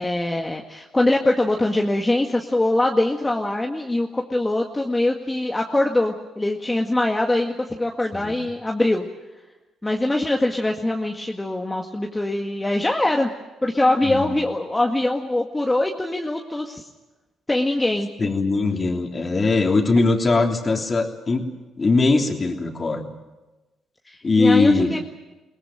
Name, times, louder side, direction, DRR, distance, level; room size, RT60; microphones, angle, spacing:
voice 1, 0.0-9.1 9.8-13.3 13.6-16.8 17.5-18.1 24.1-25.0, left 1 dB, 15° left, 1 dB, 1.9 m, -23 dB
voice 2, 14.0-14.3 18.2-21.4 21.8-23.1 24.2-24.9, left 3 dB, 35° left, 3 dB, 3.3 m, -20 dB
22.5 x 18.5 x 9.0 m, 1.1 s
hypercardioid pair, 55°, 0 cm